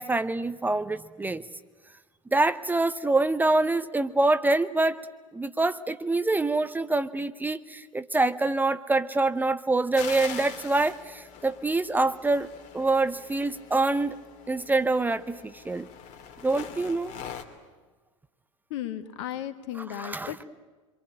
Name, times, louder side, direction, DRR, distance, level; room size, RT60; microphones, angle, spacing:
voice 1, 0.0-1.4 2.3-5.0 5.3-14.2 14.5-15.9 16.4-17.1 19.9-20.3, right 2 dB, 10° right, 13 dB, 0.9 m, -25 dB
sound 1, 9.9-17.4, left 7 dB, 45° left, 2.7 m, -43 dB
voice 2, 18.7-20.5, left 11 dB, 60° left, 10 dB, 1.9 m, -35 dB
26.5 x 23.0 x 8.9 m, 1.3 s
hypercardioid pair, 85°, 17 cm